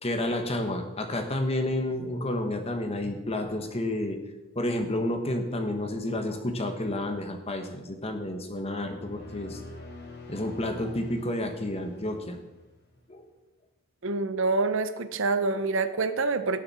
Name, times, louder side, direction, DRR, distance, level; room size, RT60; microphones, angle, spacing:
voice 1, 0.0-4.2 4.5-9.6 10.3-12.4 13.1-13.2, left 1 dB, 25° left, 5 dB, 1.3 m, -30 dB
sound 1, 8.6-12.9, left 2 dB, 50° left, 2.5 m, -46 dB
voice 2, 14.0-16.6, right 3 dB, 60° right, 11 dB, 0.7 m, -26 dB
18.0 x 6.6 x 4.3 m, 1.1 s
head